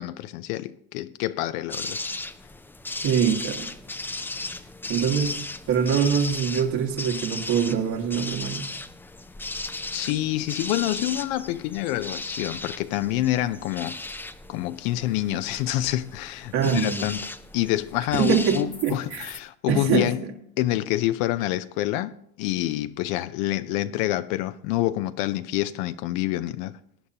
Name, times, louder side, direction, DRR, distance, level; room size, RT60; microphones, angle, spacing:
voice 1, 0.0-2.0 9.9-14.0 14.5-20.2 20.6-22.1 22.4-26.8, left 15 dB, 70° left, 0.6 m, -27 dB
sound 1, 1.7-19.4, left 2 dB, 5° left, 0.4 m, -36 dB
voice 2, 3.0-3.7 4.9-5.4 5.7-8.6 16.5-17.1 18.1-19.3 19.7-20.1, right 7 dB, 65° right, 1.9 m, -24 dB
18.5 x 9.7 x 2.8 m
supercardioid pair, 110°, 42 cm